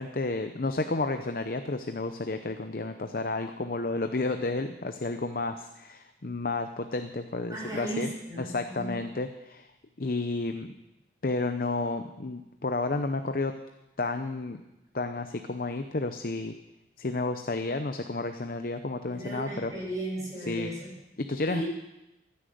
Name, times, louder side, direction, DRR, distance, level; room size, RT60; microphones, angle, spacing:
voice 1, 0.0-8.1 8.4-9.7 10.0-10.7 11.2-13.5 14.0-14.6 14.9-16.5 17.0-19.7 20.5-20.7 21.2-21.6, left 3 dB, 50° left, 8 dB, 0.7 m, -31 dB
voice 2, 7.5-9.0 19.1-20.9 21.5-21.6, right 1 dB, 15° right, -6 dB, 7.9 m, -36 dB
15.5 x 10.0 x 7.8 m, 0.93 s
head